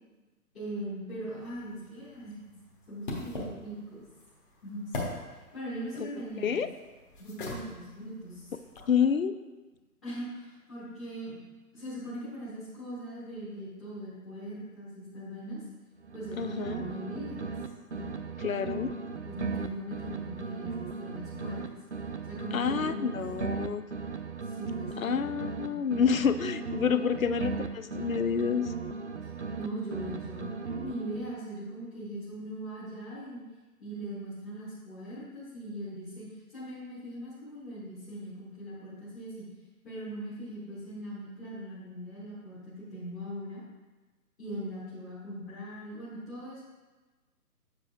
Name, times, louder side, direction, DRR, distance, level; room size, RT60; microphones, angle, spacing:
voice 1, 0.5-2.3 2.9-4.0 4.6-4.9 5.3-6.7 7.2-8.5 10.0-11.4 11.7-15.6 16.1-17.4 17.9-18.1 19.2-21.8 22.3-23.2 24.4-25.3 25.6-25.8 29.5-33.4 33.8-39.5 39.8-43.6 44.4-46.6, equal, 5° left, -15 dB, 1.0 m, -40 dB
sound 1, 1.3-9.0, left 2 dB, 35° left, 1.3 m, -43 dB
voice 2, 8.9-9.3 16.4-16.8 18.4-18.9 22.5-23.8 25.0-28.7, left 7 dB, 60° left, 11 dB, 0.5 m, -28 dB
sound 2, 16.0-17.7 17.9-21.7 21.9-25.7 25.9-29.7 29.9-31.3, right 5 dB, 50° right, 0.5 m, -37 dB
7.5 x 7.1 x 2.6 m, 1.2 s
figure-of-eight pair, 140°, 47 cm